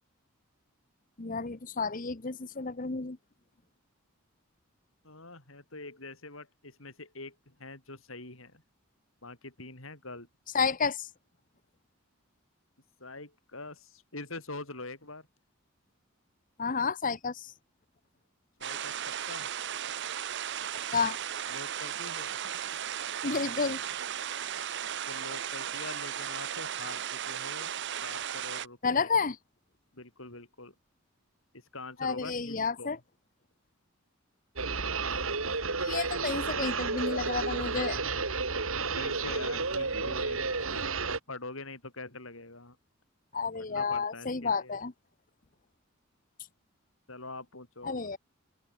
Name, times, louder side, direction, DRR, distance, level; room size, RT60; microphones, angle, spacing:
voice 1, 1.2-3.2 10.5-11.1 16.6-17.5 20.9-21.2 23.2-23.8 28.8-29.4 32.0-33.0 35.8-38.0 43.3-44.9 47.8-48.2, left 5 dB, 40° left, 1.0 m, -31 dB
voice 2, 5.0-8.6 9.2-10.3 13.0-15.3 18.6-19.5 21.5-22.4 25.1-27.7 28.0-29.1 29.9-30.7 31.7-32.9 38.7-42.8 43.6-44.8 47.1-48.1, left 2 dB, 70° left, 7.1 m, -44 dB
sound 1, 18.6-28.7, right 9 dB, 55° right, 0.8 m, -36 dB
sound 2, 34.6-41.2, right 4 dB, 75° right, 3.4 m, -31 dB
open air
head